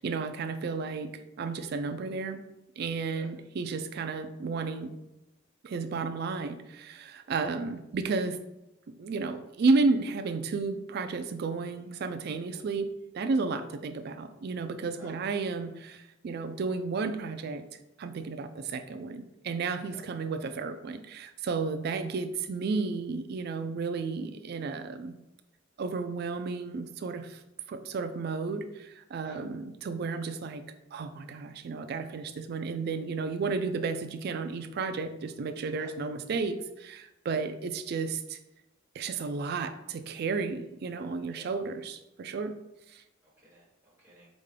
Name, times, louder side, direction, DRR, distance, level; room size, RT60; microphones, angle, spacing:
voice 1, 0.0-2.4 2.8-4.9 5.6-8.4 9.0-12.9 13.1-17.6 18.0-25.1 25.8-27.4 27.7-30.6 30.9-38.4 38.9-42.6 42.9-43.0, right 4 dB, 50° right, 9 dB, 0.3 m, -32 dB
voice 2, 43.2-44.3, right 1 dB, 10° right, -7 dB, 1.3 m, -52 dB
5.1 x 2.2 x 3.2 m, 0.94 s
head